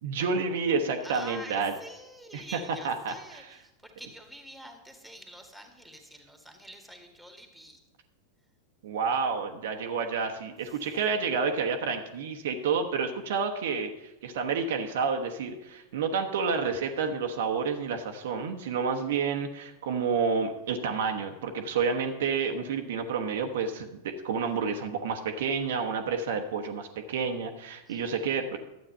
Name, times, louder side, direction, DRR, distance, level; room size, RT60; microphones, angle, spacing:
voice 1, 0.0-1.7 2.3-2.4 2.8-3.5 8.8-28.6, right 5 dB, 55° right, 5 dB, 1.0 m, -29 dB
voice 2, 1.0-7.8 10.6-10.8 27.9-28.3, equal, ahead, 4 dB, 1.9 m, -47 dB
12.5 x 8.5 x 5.5 m, 0.98 s
figure-of-eight pair, 90°, 0 cm